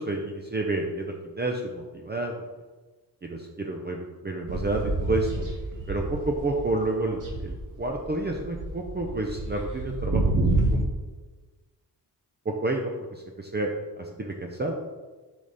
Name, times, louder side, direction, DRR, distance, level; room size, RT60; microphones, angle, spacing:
voice 1, 0.0-2.3 3.2-5.5 5.9-10.3 10.7-10.8 12.4-13.7 14.2-14.7, right 2 dB, 25° right, 1 dB, 0.8 m, -30 dB
sound 1, 4.5-6.8 7.1-10.8, right 2 dB, 50° right, 1.6 m, -28 dB
6.3 x 5.2 x 4.2 m, 1.3 s
cardioid pair, 80°, 40 cm